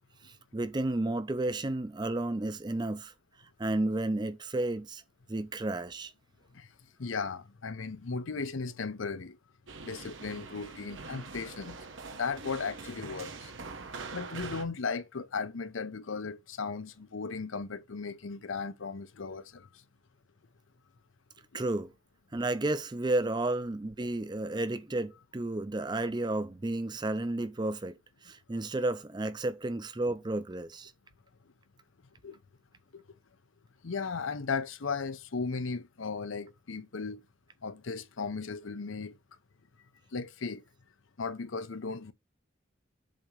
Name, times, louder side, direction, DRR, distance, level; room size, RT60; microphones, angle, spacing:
voice 1, 0.2-3.1 3.6-5.0 5.3-6.1 21.5-21.9 22.3-28.0 28.2-30.9, right 2 dB, 20° right, 0.5 m, -32 dB
voice 2, 7.0-9.4 9.8-11.8 12.1-13.5 14.1-19.7 21.5-21.6 32.2-32.4 32.9-33.0 33.8-37.2 37.6-39.2 40.1-40.6 41.2-42.1, left 4 dB, 85° left, 0.7 m, -36 dB
sound 1, 9.7-14.6, right 4 dB, 80° right, 1.0 m, -43 dB
7.5 x 2.9 x 5.1 m
head